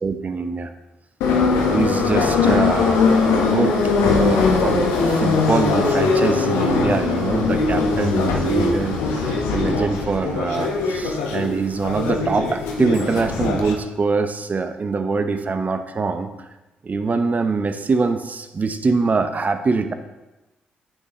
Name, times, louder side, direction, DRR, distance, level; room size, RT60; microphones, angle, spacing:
voice 1, 0.0-0.7 1.7-16.3 16.8-19.9, right 4 dB, 40° right, 9 dB, 0.8 m, -23 dB
Subway metro underground, 1.2-13.7, left 4 dB, 75° left, 1.0 m, -20 dB
9.7 x 7.3 x 3.0 m, 1.0 s
hypercardioid pair, 40°, 4 cm